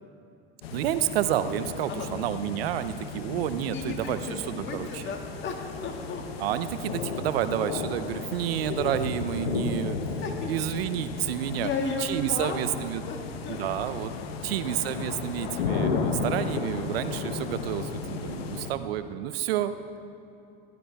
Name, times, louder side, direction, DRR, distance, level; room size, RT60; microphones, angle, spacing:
sound 1, 0.6-18.7, left 5 dB, 90° left, 1.0 m, -34 dB
voice 1, 0.7-5.0 6.4-10.2 10.5-11.7 12.0-13.1 13.5-14.1 14.4-19.8, right 11 dB, 85° right, 12 dB, 0.7 m, -30 dB
voice 2, 3.7-6.2 10.2-10.5 11.6-12.6 13.1-13.2 13.5-13.6, left 4 dB, 40° left, 2 dB, 2.0 m, -34 dB
15.5 x 12.0 x 3.5 m, 2.7 s
hypercardioid pair, 95°, 29 cm